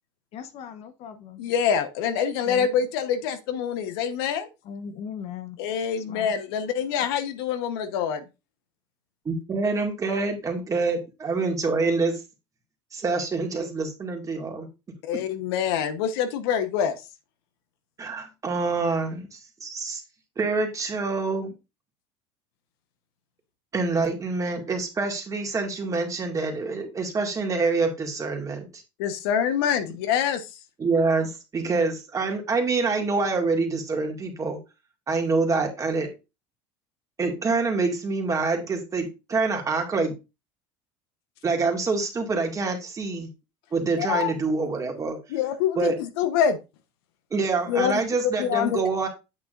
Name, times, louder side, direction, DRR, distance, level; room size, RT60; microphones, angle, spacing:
voice 1, 0.3-1.4 2.4-2.7 4.6-5.6 5.9-6.3 10.1-10.2, left 7 dB, 55° left, 9 dB, 1.1 m, -38 dB
voice 2, 1.4-4.5 5.6-8.2 15.0-17.0 29.0-30.5 44.0-44.3 45.3-46.6 47.7-48.0 48.4-48.8, left 8 dB, 80° left, 9 dB, 1.1 m, -25 dB
voice 3, 9.3-12.2 12.9-14.7 15.1-15.2 18.0-20.0 20.4-21.5 23.7-28.7 30.8-34.6 35.1-36.1 37.2-40.1 41.4-43.3 43.7-45.2 45.8-45.9 47.3-49.1, right 3 dB, 25° right, 3 dB, 2.1 m, -26 dB
8.5 x 6.1 x 2.5 m, 0.26 s
supercardioid pair, 110°, 13 cm